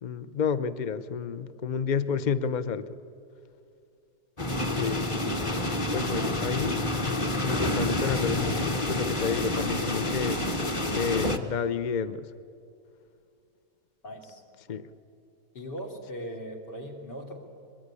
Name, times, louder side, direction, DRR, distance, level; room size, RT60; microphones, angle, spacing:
voice 1, 0.0-3.0 4.7-5.1 5.9-10.4 10.9-12.3 14.7-14.9, left 6 dB, 65° left, 14 dB, 0.4 m, -30 dB
sound 1, 4.4-11.4, left 1 dB, 20° left, 1.0 m, -28 dB
voice 2, 14.0-14.4 15.6-17.4, equal, 85° left, 2 dB, 3.6 m, -39 dB
22.5 x 22.0 x 9.8 m, 2.5 s
omnidirectional pair, 1.8 m